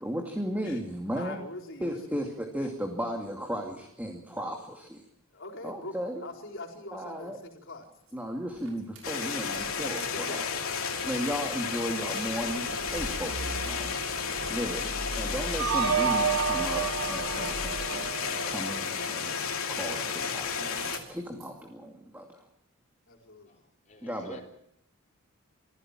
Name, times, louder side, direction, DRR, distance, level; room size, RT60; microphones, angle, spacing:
voice 1, 0.0-1.4 1.8-5.0 5.6-6.2 6.9-7.4 8.1-10.5 11.0-14.0 14.5-19.3 19.7-22.5 24.0-24.4, equal, 10° right, 2 dB, 2.4 m, -35 dB
voice 2, 1.1-2.3 5.3-7.9 10.1-10.4 10.8-11.3 13.0-13.4 14.5-15.0 23.1-23.6, left 2 dB, 60° left, 2 dB, 4.5 m, -43 dB
sound 1, 8.1-8.2 8.5-10.1 10.4-18.2 19.7-20.4 20.6-21.6, right 1 dB, 65° right, 6.9 m, -42 dB
sound 2, 9.0-21.0, left 6 dB, 80° left, 2.7 m, -32 dB
sound 3, 15.6-18.7, right 6 dB, 90° right, 3.8 m, -29 dB
voice 3, 23.9-24.4, left 2 dB, 35° left, 2 dB, 3.7 m, -48 dB
26.0 x 15.5 x 7.5 m, 0.75 s
head